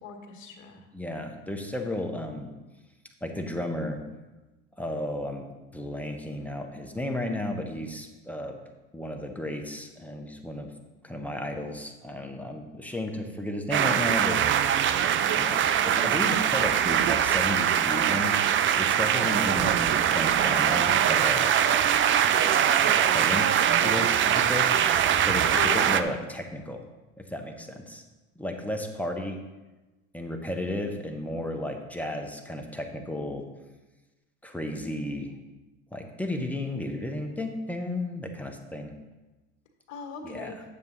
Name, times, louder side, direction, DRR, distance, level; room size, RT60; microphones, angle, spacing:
voice 1, 0.0-0.8 25.5-26.1 39.9-40.5, left 6 dB, 45° left, 1 dB, 1.7 m, -38 dB
voice 2, 0.9-2.5 3.2-4.0 4.8-5.4 5.7-8.6 8.9-10.7 11.0-14.5 15.3-18.3 18.7-21.5 22.9-23.5 23.8-26.8 27.2-28.0 28.4-29.4 30.1-33.5 34.4-35.3 35.9-38.9 40.2-40.6, left 1 dB, 5° left, 4 dB, 1.2 m, -33 dB
sound 1, 13.7-26.0, right 9 dB, 30° right, 0.5 m, -23 dB
9.5 x 7.2 x 4.1 m, 1.1 s
hypercardioid pair, 75°, 39 cm